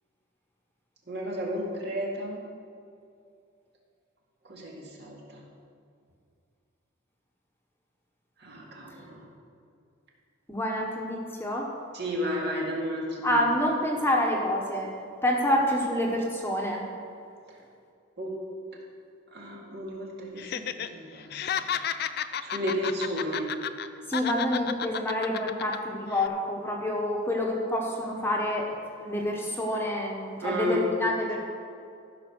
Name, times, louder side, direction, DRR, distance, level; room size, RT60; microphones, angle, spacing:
voice 1, 1.1-2.4 4.4-5.4 8.4-9.3 11.9-13.4 18.2-18.4 19.3-21.7 22.4-23.5 30.4-30.9, equal, 55° right, -3 dB, 2.2 m, -33 dB
voice 2, 10.5-11.7 13.2-14.9 15.2-16.8 24.1-28.7 29.0-31.4, left 1 dB, 10° left, -1 dB, 1.2 m, -27 dB
Laughter, 20.4-20.9 21.2-23.9 24.1-25.8 26.1-26.3, left 8 dB, 55° left, 0.4 m, -32 dB
14.5 x 5.6 x 6.1 m, 2.5 s
head